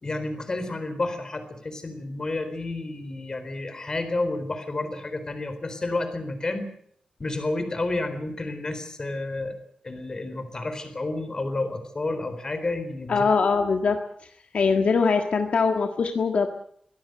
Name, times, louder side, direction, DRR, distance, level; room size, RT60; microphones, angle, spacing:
voice 1, 0.0-6.7 7.2-9.5 9.8-13.3, left 2 dB, 30° left, 9 dB, 4.1 m, -30 dB
voice 2, 13.1-14.3 14.5-16.5, left 5 dB, 60° left, 5 dB, 1.7 m, -22 dB
23.5 x 17.5 x 7.8 m, 0.66 s
wide cardioid pair, 175°, 2 cm